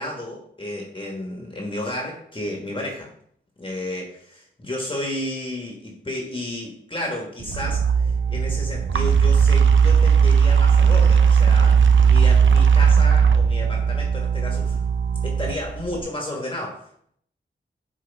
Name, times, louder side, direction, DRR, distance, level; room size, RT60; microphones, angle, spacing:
voice 1, 0.0-3.1 3.6-14.8 15.2-16.9, left 1 dB, 25° left, 0 dB, 1.5 m, -32 dB
sound 1, 7.4-16.0, right 6 dB, 80° right, 0.6 m, -17 dB
8.3 x 4.5 x 3.5 m, 0.64 s
wide cardioid pair, 80°, 19 cm